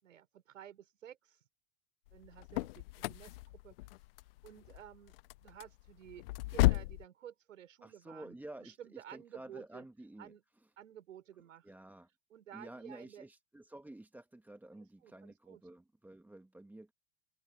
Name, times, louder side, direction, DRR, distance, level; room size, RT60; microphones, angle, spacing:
voice 1, 0.0-1.4 2.1-3.8 4.4-5.2 5.4-9.9 10.2-10.4 10.8-11.7 12.3-13.3 14.7-15.6, right 10 dB, 65° right, 5.8 m, -53 dB
sound 1, 2.1-7.0, left 20 dB, 45° left, 0.6 m, -34 dB
voice 2, 7.8-10.7 11.6-12.1 12.5-16.9, right 1 dB, 5° right, 2.0 m, -51 dB
open air
figure-of-eight pair, 85°, 42 cm